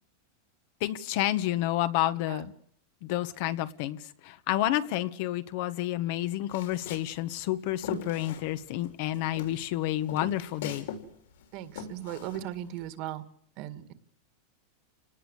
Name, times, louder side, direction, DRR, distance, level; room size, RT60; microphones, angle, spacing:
voice 1, 0.8-2.5 3.0-10.9, left 14 dB, 45° left, 12 dB, 1.4 m, -30 dB
Walk footsteps, 6.5-8.9 9.1-11.1 11.3-12.9, left 5 dB, 70° left, 6.3 m, -40 dB
voice 2, 11.5-13.2 13.6-13.9, right 12 dB, 40° right, 12 dB, 2.1 m, -37 dB
29.5 x 19.0 x 8.4 m, 0.70 s
supercardioid pair, 170°, 0 cm